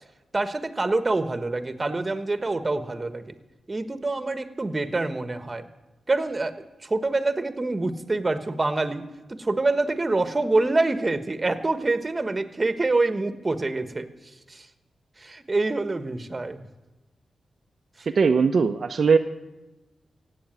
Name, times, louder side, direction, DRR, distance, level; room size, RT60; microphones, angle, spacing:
voice 1, 0.3-3.4 3.7-5.7 6.1-6.5 6.8-14.1 14.5-14.7 15.2-16.7, right 2 dB, 35° right, 11 dB, 1.4 m, -26 dB
voice 2, 18.1-19.2, right 5 dB, 60° right, 6 dB, 0.7 m, -19 dB
16.0 x 8.6 x 9.0 m, 1.1 s
cardioid pair, 50°, 0 cm